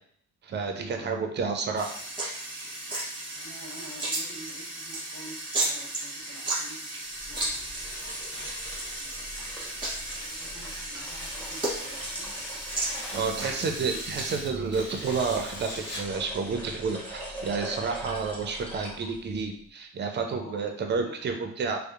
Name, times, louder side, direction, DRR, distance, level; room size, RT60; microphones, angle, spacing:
voice 1, 0.4-1.9 13.1-21.8, right 5 dB, 35° right, 4 dB, 0.4 m, -30 dB
sound 1, 1.8-14.4, right 2 dB, 15° right, 1.1 m, -34 dB
voice 2, 3.3-6.8 7.3-7.9 8.8-9.4 9.8-12.4 13.1-14.2 20.3-21.5, equal, 60° left, -5 dB, 1.3 m, -49 dB
sound 2, 7.1-19.5, equal, 5° left, 0.9 m, -42 dB
Tearing, 7.8-16.2, left 1 dB, 35° left, 0.8 m, -43 dB
2.7 x 2.0 x 2.4 m, 0.62 s
cardioid pair, 90°, 30 cm